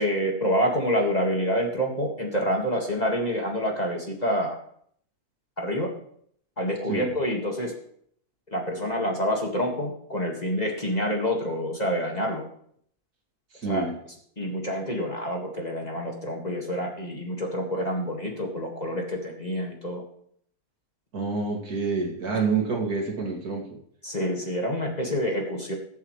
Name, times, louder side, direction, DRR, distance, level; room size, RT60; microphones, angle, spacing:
voice 1, 0.0-4.6 5.6-5.9 6.6-7.7 8.5-12.4 13.6-13.9 14.4-20.0 22.3-22.4 24.0-25.7, equal, 25° left, 0 dB, 2.0 m, -27 dB
voice 2, 13.5-13.9 21.1-23.7, right 4 dB, 70° right, 0 dB, 2.8 m, -27 dB
21.0 x 8.0 x 3.2 m, 0.65 s
omnidirectional pair, 1.6 m